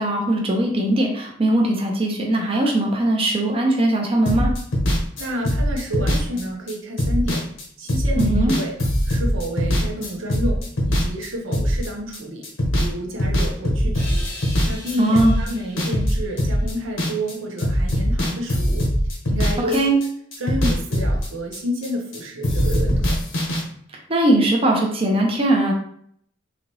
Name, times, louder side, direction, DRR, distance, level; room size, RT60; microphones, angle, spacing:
voice 1, 0.0-4.5 8.2-8.5 15.0-15.3 19.7-19.9 24.1-25.7, right 1 dB, 30° right, 0 dB, 0.6 m, -20 dB
sound 1, 4.3-12.2 12.4-12.9 13.2-17.3 17.6-22.2 22.4-23.6, equal, 80° left, 1.0 m, -22 dB
voice 2, 5.2-7.4 7.8-8.8 9.0-12.5 12.8-14.2 14.7-18.9 19.3-19.9 20.4-23.1, equal, 85° right, 0 dB, 0.9 m, -29 dB
3.9 x 2.8 x 3.0 m, 0.65 s
head